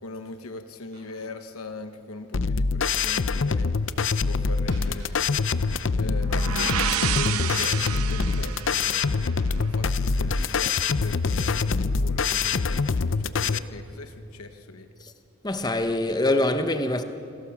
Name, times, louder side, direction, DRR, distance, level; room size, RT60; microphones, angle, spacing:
voice 1, 0.0-5.6 6.0-14.9, left 3 dB, 85° left, 1.1 m, -40 dB
Slam, 0.9-1.2 1.5-1.6 2.0-2.1 3.9-6.5, equal, 60° right, 7.5 m, -48 dB
sound 1, 2.3-13.6, left 4 dB, 60° left, 0.6 m, -25 dB
sound 2, 6.0-9.9, right 8 dB, 85° right, 0.9 m, -31 dB
voice 2, 15.4-17.0, left 1 dB, 20° left, 1.0 m, -24 dB
28.0 x 17.5 x 7.1 m
head